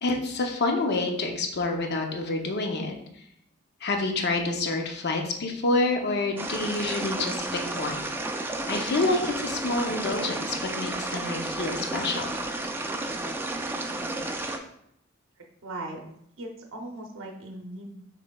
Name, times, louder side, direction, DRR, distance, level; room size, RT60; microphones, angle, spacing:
voice 1, 0.0-2.9 3.8-8.1 8.7-12.3, left 2 dB, 55° left, 3 dB, 0.6 m, -28 dB
sound 1, 6.4-14.6, right 2 dB, 10° right, 0.3 m, -32 dB
voice 2, 15.6-16.0 16.4-17.9, right 2 dB, 65° right, 2 dB, 0.6 m, -38 dB
6.2 x 3.2 x 2.3 m, 0.72 s
head